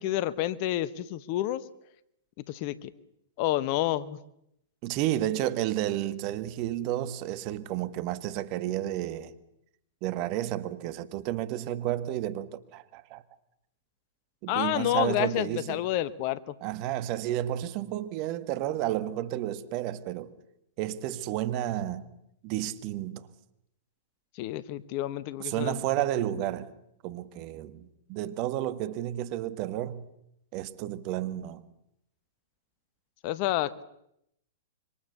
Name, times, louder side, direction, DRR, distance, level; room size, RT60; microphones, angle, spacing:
voice 1, 0.0-1.6 2.5-2.9 3.4-4.2 14.5-16.5 24.4-25.8 33.2-33.8, left 14 dB, 45° left, 1.3 m, -29 dB
voice 2, 4.8-9.3 10.0-13.2 14.4-15.8 16.6-20.3 20.8-22.1 22.4-23.3 25.4-26.7 27.0-30.1 30.5-31.7, right 13 dB, 45° right, 1.9 m, -31 dB
26.5 x 25.0 x 6.9 m
hypercardioid pair, 110°, 0 cm